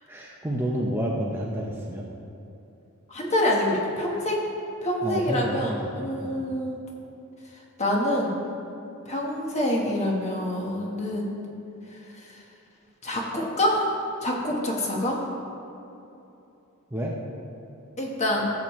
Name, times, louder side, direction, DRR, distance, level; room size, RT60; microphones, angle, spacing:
voice 1, 0.1-2.0 5.0-5.9 6.2-6.4 16.9-17.2, equal, 10° right, -3 dB, 0.7 m, -29 dB
voice 2, 3.1-4.4 4.8-6.8 7.8-8.4 9.1-11.3 13.0-15.2 18.0-18.5, left 1 dB, 30° left, -1 dB, 1.3 m, -26 dB
15.0 x 7.3 x 3.2 m, 2.9 s
head